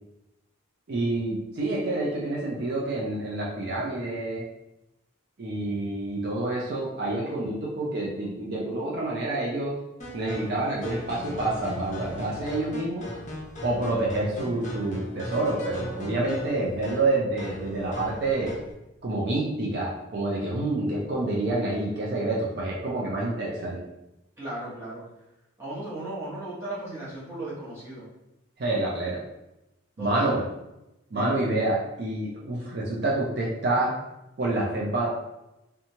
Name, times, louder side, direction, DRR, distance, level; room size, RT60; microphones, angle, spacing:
voice 1, 0.9-4.4 5.4-9.8 10.1-13.1 13.6-18.6 19.0-23.8 28.6-29.2 30.0-30.4 31.1-33.9 34.4-35.1, right 2 dB, 50° right, -4 dB, 0.4 m, -28 dB
sound 1, 10.0-18.7, equal, 35° left, 0.6 m, -38 dB
voice 2, 24.4-25.0 25.6-28.1 30.0-30.4 31.1-31.5, right 1 dB, 15° right, -9 dB, 0.9 m, -36 dB
2.9 x 2.2 x 2.7 m, 0.92 s
head